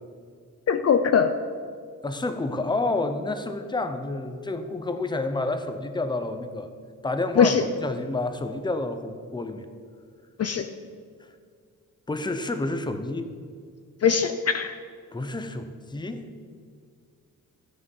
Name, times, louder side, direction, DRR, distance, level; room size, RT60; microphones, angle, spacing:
voice 1, 0.7-1.4 7.4-7.6 10.4-10.7 14.0-14.7, left 6 dB, 45° left, 8 dB, 0.5 m, -21 dB
voice 2, 2.0-6.7 7.0-9.7 12.1-13.3 15.1-16.3, left 2 dB, 15° left, 8 dB, 0.7 m, -29 dB
14.5 x 9.8 x 5.5 m, 2.1 s
wide cardioid pair, 175°, 34 cm